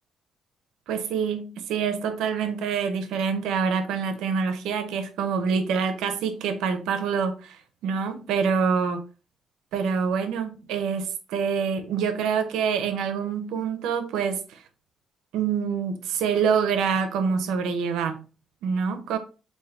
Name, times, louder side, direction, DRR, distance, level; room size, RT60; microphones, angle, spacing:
voice 1, 0.9-9.1 9.7-14.6 15.3-18.2 18.6-19.2, right 6 dB, 90° right, 0.5 m, -26 dB
3.4 x 2.6 x 3.4 m
cardioid pair, 90°, 0 cm